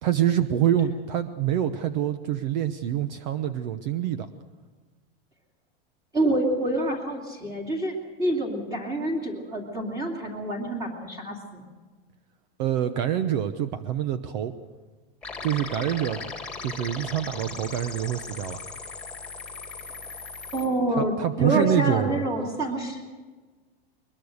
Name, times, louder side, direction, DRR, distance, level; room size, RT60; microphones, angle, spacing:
voice 1, 0.0-4.3 12.6-14.5 15.4-16.2 16.6-18.6 20.9-22.2, right 10 dB, 45° right, 11 dB, 1.0 m, -26 dB
voice 2, 6.1-11.7 20.5-23.0, right 1 dB, 10° right, 0 dB, 2.6 m, -27 dB
sound 1, 15.2-20.7, left 4 dB, 5° left, 2.2 m, -38 dB
22.0 x 21.0 x 6.6 m, 1.3 s
supercardioid pair, 170°, 30 cm